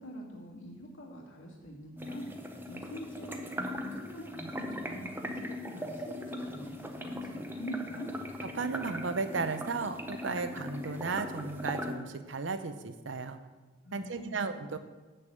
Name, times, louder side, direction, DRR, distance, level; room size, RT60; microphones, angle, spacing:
voice 1, 0.0-8.1 13.8-14.5, equal, 85° left, -2 dB, 2.4 m, -44 dB
sound 1, 2.0-11.9, left 1 dB, 10° right, 0.7 m, -39 dB
voice 2, 8.5-13.4 13.9-14.8, right 4 dB, 75° right, 10 dB, 0.7 m, -34 dB
7.0 x 6.6 x 7.8 m, 1.3 s
head